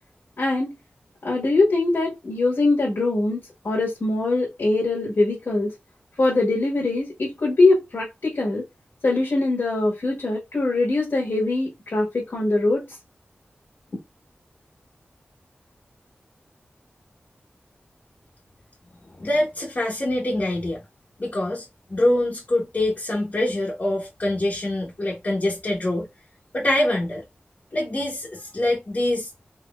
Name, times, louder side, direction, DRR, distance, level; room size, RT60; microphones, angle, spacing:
voice 1, 0.4-0.7 1.2-5.7 6.2-8.6 9.0-12.9, left 2 dB, 75° left, 1.5 m, -22 dB
voice 2, 19.2-20.8 21.2-26.1 26.5-27.2 27.7-29.3, left 1 dB, 45° left, 1.1 m, -24 dB
3.7 x 3.0 x 2.4 m
wide cardioid pair, 90°, 4 cm